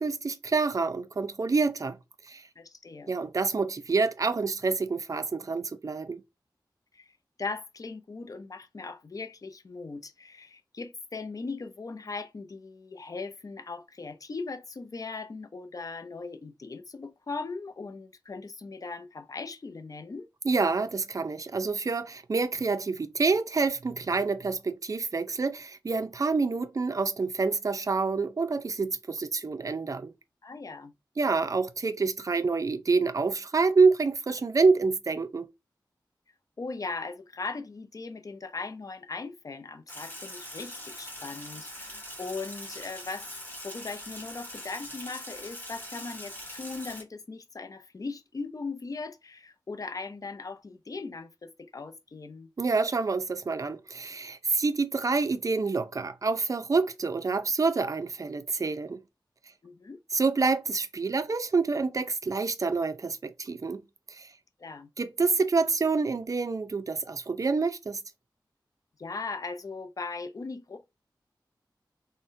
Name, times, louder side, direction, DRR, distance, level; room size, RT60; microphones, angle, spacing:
voice 1, 0.0-2.0 2.3-2.4 3.1-6.2 20.4-30.1 31.2-35.5 52.6-59.0 60.1-63.8 64.1-64.3 65.0-68.0, right 4 dB, 45° right, 0.4 m, -27 dB
voice 2, 2.6-3.1 6.9-7.1 7.4-20.3 30.4-30.9 36.6-43.3 43.6-52.5 59.6-60.0 64.6-64.9 69.0-70.9, left 4 dB, 50° left, 0.4 m, -39 dB
Sink (filling or washing), 39.9-47.0, left 1 dB, 25° left, 1.0 m, -42 dB
3.7 x 2.1 x 2.5 m
wide cardioid pair, 85°, 8 cm